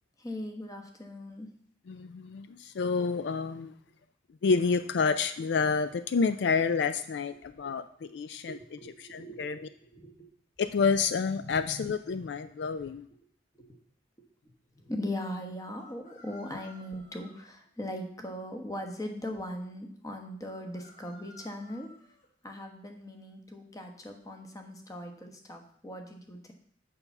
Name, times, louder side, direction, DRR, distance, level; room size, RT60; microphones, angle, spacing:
voice 1, 0.2-1.5 8.5-10.1 13.5-13.8 14.7-21.9 22.4-26.5, left 1 dB, 20° left, 4 dB, 1.0 m, -39 dB
voice 2, 1.9-3.7 4.4-8.6 9.0-9.7 10.6-13.1, left 5 dB, 70° left, 12 dB, 0.4 m, -29 dB
sound 1, 12.2-12.4 15.8-17.5 20.4-22.3, left 1 dB, 40° left, 1.4 m, -55 dB
6.8 x 5.5 x 7.0 m, 0.64 s
head